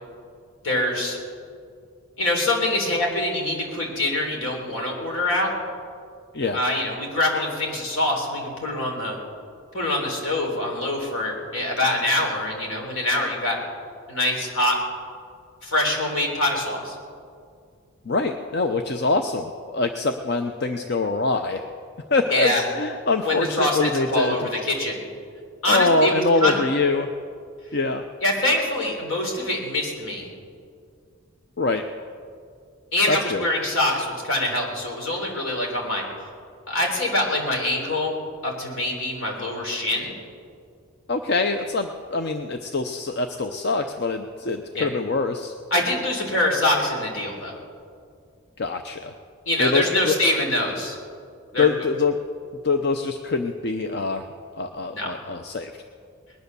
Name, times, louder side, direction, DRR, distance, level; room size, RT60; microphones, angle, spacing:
voice 1, 0.6-1.2 2.2-5.5 6.5-9.2 9.7-13.6 14.1-14.8 15.6-17.0 22.3-22.6 23.2-25.0 25.6-26.6 28.2-30.3 32.9-36.0 36.7-38.2 38.4-40.1 44.7-44.9 45.7-47.6 49.5-51.0 51.5-51.7 54.9-55.1, left 1 dB, 75° left, 0 dB, 3.7 m, -24 dB
voice 2, 18.1-21.6 22.1-24.3 25.7-27.1 27.7-28.0 31.6-31.8 33.1-33.5 41.1-45.5 48.6-49.1 49.6-50.1 51.6-52.2 52.6-54.3 54.6-55.7, left 3 dB, 50° left, 6 dB, 0.6 m, -24 dB
20.0 x 10.5 x 6.9 m, 2.2 s
head